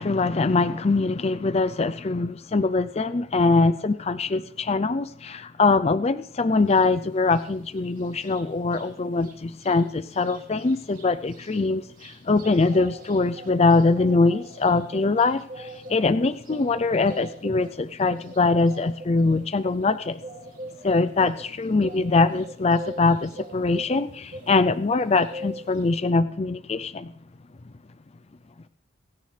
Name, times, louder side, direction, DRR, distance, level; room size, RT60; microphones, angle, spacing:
voice 1, 0.0-20.2 20.8-27.1, left 3 dB, 30° left, 12 dB, 0.4 m, -23 dB
sound 1, 6.7-6.9 7.3-8.9 9.2-9.3 9.6-24.6 24.9-26.0, right 1 dB, 40° right, 2.8 m, -42 dB
25.5 x 10.5 x 3.3 m, 0.63 s
head